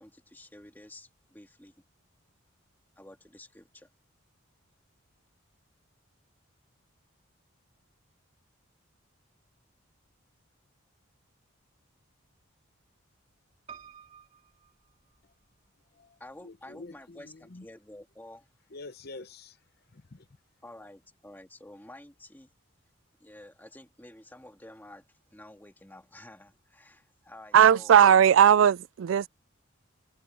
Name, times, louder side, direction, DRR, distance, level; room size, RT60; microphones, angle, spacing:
voice 1, 0.0-1.8 3.0-3.9 16.2-18.5 20.6-22.5 23.2-28.0, left 1 dB, 10° left, 2.0 m, -50 dB
Piano, 13.7-15.7 16.3-17.0 17.3-17.4 17.6-17.7, right 7 dB, 30° right, 5.4 m, -51 dB
voice 2, 15.9-17.7 18.7-19.6 19.9-20.3, left 2 dB, 50° left, 0.8 m, -47 dB
voice 3, 27.5-29.3, right 9 dB, 65° right, 0.3 m, -18 dB
head